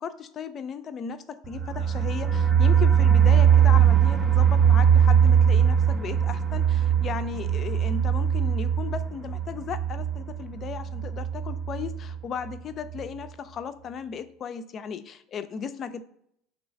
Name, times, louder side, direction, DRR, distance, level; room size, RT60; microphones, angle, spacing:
voice 1, 0.0-16.0, left 7 dB, 45° left, 10 dB, 0.3 m, -36 dB
sound 1, 1.4-12.1 12.5-12.6 12.9-13.0, right 8 dB, 30° right, 0.4 m, -21 dB
3.1 x 2.7 x 4.0 m, 0.70 s
hypercardioid pair, 70°, 0 cm